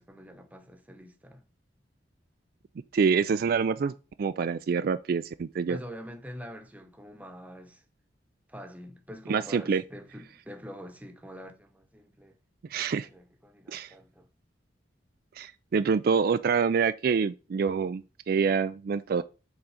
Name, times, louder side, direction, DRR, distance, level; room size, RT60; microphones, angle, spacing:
voice 1, 0.0-1.4 5.7-7.8 8.5-12.4 12.8-14.3, equal, 10° right, 1.0 m, -45 dB
voice 2, 2.9-3.9 4.2-5.8 9.3-9.8 12.7-13.1 13.7-13.9 15.4-19.2, right 5 dB, 55° right, 0.3 m, -26 dB
7.1 x 3.9 x 4.9 m
head